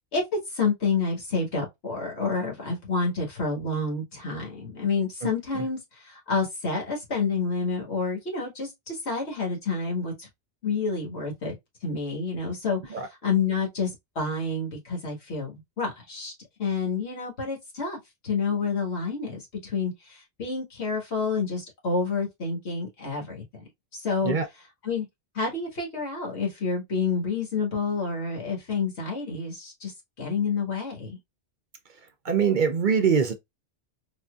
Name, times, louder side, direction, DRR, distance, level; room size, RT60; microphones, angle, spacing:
voice 1, 0.1-10.3 10.6-11.5 11.8-16.3 16.6-23.4 23.9-24.3 24.8-25.1 25.3-31.2, left 4 dB, 80° left, 1.8 m, -29 dB
voice 2, 32.2-33.3, right 6 dB, 55° right, 0.7 m, -23 dB
4.2 x 2.6 x 2.3 m
omnidirectional pair, 1.1 m